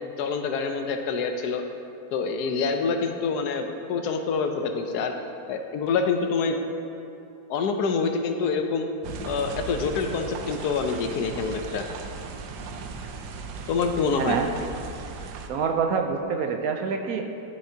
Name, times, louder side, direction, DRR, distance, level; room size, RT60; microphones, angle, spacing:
voice 1, 0.2-1.6 2.1-5.1 5.5-6.6 7.5-8.8 9.3-11.9 13.7-14.4, left 5 dB, 85° left, 5 dB, 1.2 m, -26 dB
sound 1, 9.0-15.5, right 4 dB, 85° right, 1.2 m, -37 dB
voice 2, 14.2-14.5 15.5-17.2, right 6 dB, 70° right, 5 dB, 1.0 m, -26 dB
10.5 x 7.3 x 2.7 m, 2.7 s
omnidirectional pair, 1.7 m